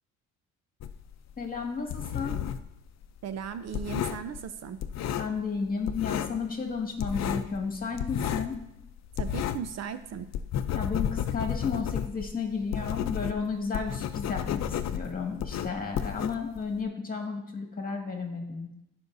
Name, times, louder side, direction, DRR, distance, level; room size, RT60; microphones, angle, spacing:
sound 1, 0.8-2.7 3.0-5.6 5.8-6.4 6.7-9.8 10.1-16.8, left 9 dB, 60° left, 0.6 m, -32 dB
voice 1, 1.4-2.4 5.2-8.6 10.7-18.7, left 5 dB, 30° left, 2 dB, 2.0 m, -33 dB
voice 2, 3.2-4.8 9.2-10.3, right 7 dB, 60° right, 11 dB, 0.6 m, -37 dB
16.0 x 5.3 x 2.7 m, 0.86 s
cardioid pair, 90°, 30 cm